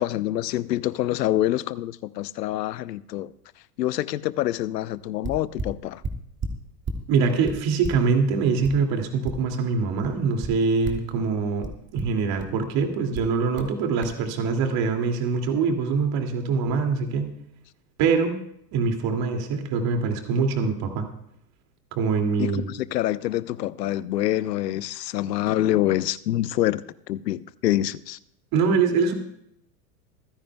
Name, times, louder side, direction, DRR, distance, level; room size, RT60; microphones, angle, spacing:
voice 1, 0.0-3.3 3.8-6.0 22.4-28.2, left 14 dB, 75° left, 0.8 m, -26 dB
sound 1, 4.9-5.0 5.2-7.1 7.4-9.7 10.0-11.1 11.6-12.6 13.1-13.7 14.0-14.2, right 2 dB, 25° right, 2.2 m, -34 dB
voice 2, 7.1-11.7 11.9-17.3 18.0-18.4 18.7-21.1 21.9-22.7 28.5-29.1, right 5 dB, 45° right, 2.6 m, -24 dB
27.0 x 10.0 x 2.3 m
hypercardioid pair, 90°, 49 cm